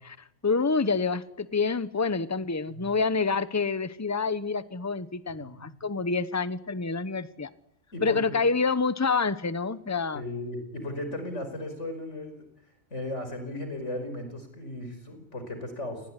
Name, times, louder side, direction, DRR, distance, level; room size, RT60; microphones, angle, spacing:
voice 1, 0.4-7.5 8.0-10.2, left 4 dB, 15° left, 14 dB, 0.9 m, -27 dB
voice 2, 5.4-5.7 7.9-8.3 10.1-12.4 12.9-16.0, left 1 dB, 70° left, 7 dB, 5.7 m, -36 dB
28.0 x 20.0 x 10.0 m, 0.81 s
omnidirectional pair, 1.3 m